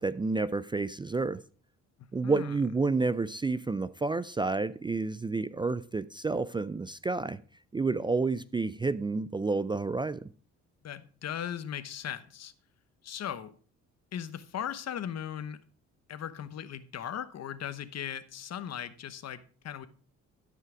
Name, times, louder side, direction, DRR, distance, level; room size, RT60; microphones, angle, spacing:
voice 1, 0.0-1.4 2.1-7.4 7.7-10.3, right 3 dB, 15° right, 0.4 m, -30 dB
voice 2, 2.0-2.5 10.8-12.5 13.0-13.5 14.1-15.6 16.1-19.9, left 9 dB, 60° left, 1.0 m, -38 dB
13.0 x 5.7 x 4.9 m
cardioid pair, 90°, 30 cm